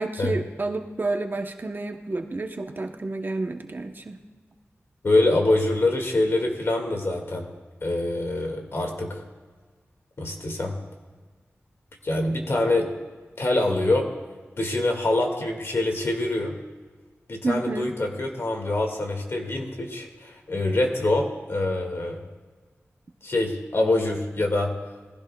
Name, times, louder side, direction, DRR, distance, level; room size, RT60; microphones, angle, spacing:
voice 1, 0.0-4.2 17.4-17.9, right 3 dB, 45° right, 5 dB, 0.8 m, -29 dB
voice 2, 5.0-7.5 7.8-9.2 10.2-10.8 12.0-12.9 13.4-14.1 14.6-16.5 17.3-22.2 23.2-24.7, left 2 dB, 60° left, 2 dB, 1.9 m, -25 dB
20.0 x 15.5 x 2.3 m, 1.4 s
wide cardioid pair, 95°, 5 cm